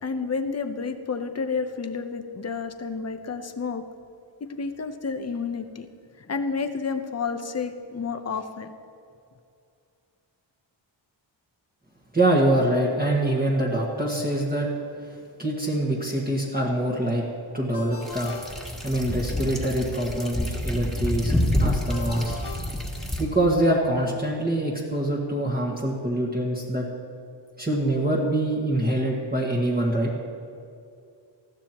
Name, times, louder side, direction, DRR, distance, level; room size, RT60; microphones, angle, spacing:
voice 1, 0.0-3.9 4.4-5.9 6.2-8.7, left 5 dB, 35° left, 7 dB, 0.9 m, -30 dB
voice 2, 12.1-14.7 15.4-17.2 17.5-18.3 18.8-21.3 21.6-22.4 23.2-26.8 27.6-30.1, right 1 dB, 20° right, -4 dB, 1.7 m, -24 dB
Ringtone, 17.7-19.4 21.9-23.6, left 2 dB, 55° left, 1.8 m, -41 dB
sound 1, 18.0-23.2, left 1 dB, ahead, 1.8 m, -28 dB
20.0 x 14.5 x 3.0 m, 2.4 s
wide cardioid pair, 140°, 46 cm